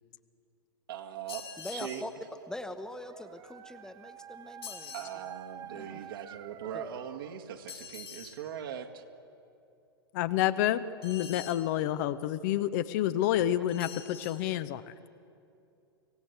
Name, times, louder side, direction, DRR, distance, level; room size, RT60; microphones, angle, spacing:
voice 1, 0.9-1.5 1.7-2.0 4.9-9.0, right 9 dB, 60° right, 2 dB, 1.9 m, -40 dB
sound 1, 1.3-2.1 4.6-5.2 7.7-8.4 11.0-11.7 13.7-14.4, left 6 dB, 75° left, 4.8 m, -45 dB
voice 2, 1.6-2.1 2.5-5.1 5.7-6.1 6.7-6.9, left 1 dB, 5° left, 9 dB, 1.0 m, -43 dB
Dog, 2.4-7.5, right 9 dB, 25° right, 0.9 m, -49 dB
voice 3, 10.1-14.8, left 12 dB, 45° left, 13 dB, 0.8 m, -29 dB
25.0 x 16.5 x 8.0 m, 2.6 s
figure-of-eight pair, 100°, 13 cm